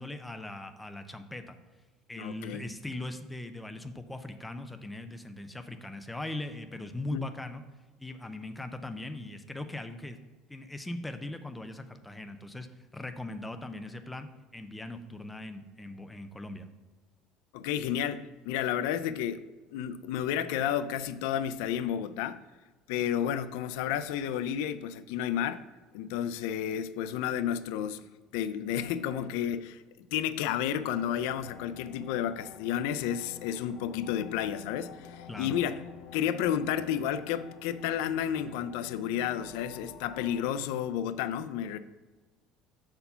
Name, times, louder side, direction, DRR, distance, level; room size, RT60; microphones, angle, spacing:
voice 1, 0.0-1.6 2.1-7.6 8.0-10.2 10.5-12.7 12.9-16.7 35.3-35.6, left 1 dB, 5° left, 0.4 m, -40 dB
voice 2, 2.2-2.6 7.1-7.3 17.5-19.4 19.7-22.4 22.9-25.6 25.9-28.1 28.3-35.8 36.1-41.8, left 9 dB, 80° left, 0.4 m, -31 dB
sound 1, 30.8-40.4, left 8 dB, 55° left, 0.9 m, -49 dB
6.8 x 4.4 x 5.6 m
cardioid pair, 170°, 0 cm